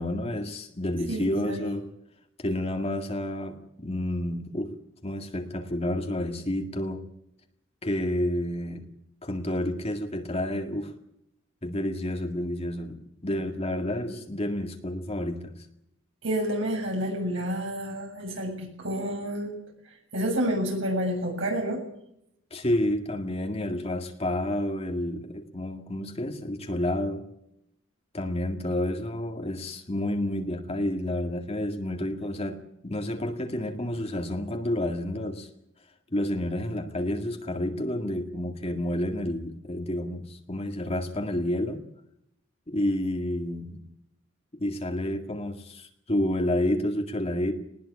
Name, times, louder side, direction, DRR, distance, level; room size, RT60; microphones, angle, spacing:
voice 1, 0.0-1.9 2.4-4.8 5.0-7.1 7.8-8.8 9.2-10.9 11.6-15.5 22.5-27.3 28.1-35.5 36.1-41.8 42.7-43.8 44.5-47.5, left 1 dB, 30° left, 4 dB, 2.0 m, -30 dB
voice 2, 1.1-1.7 16.2-19.5 20.1-21.8, equal, 70° right, 1 dB, 7.6 m, -29 dB
20.0 x 19.5 x 8.4 m, 0.77 s
head